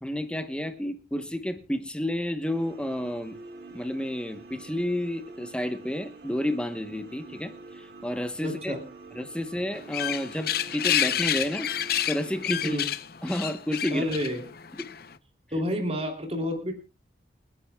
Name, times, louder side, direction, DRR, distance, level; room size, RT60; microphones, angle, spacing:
voice 1, 0.0-3.4 3.7-8.7 9.1-12.8 13.2-14.0 14.8-14.9, left 1 dB, 5° left, 8 dB, 0.9 m, -31 dB
sound 1, 2.4-12.9, right 3 dB, 60° right, 2.6 m, -47 dB
voice 2, 8.4-8.8 12.6-12.9 13.9-14.4 15.5-16.7, equal, 30° right, 3 dB, 3.0 m, -29 dB
sound 2, 9.7-15.1, left 11 dB, 50° left, 0.7 m, -29 dB
29.5 x 10.0 x 2.3 m, 0.30 s
head